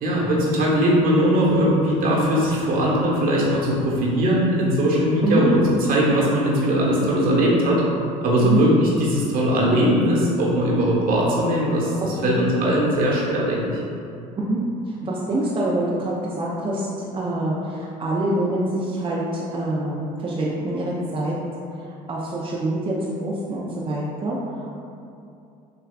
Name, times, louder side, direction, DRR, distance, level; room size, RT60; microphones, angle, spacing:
voice 1, 0.0-7.8 8.2-13.7, equal, 55° right, -4 dB, 1.1 m, -20 dB
voice 2, 12.0-12.4 14.4-21.4 22.1-24.7, right 1 dB, 30° right, -5 dB, 0.6 m, -25 dB
6.7 x 2.3 x 2.3 m, 2.6 s
hypercardioid pair, 70°, 18 cm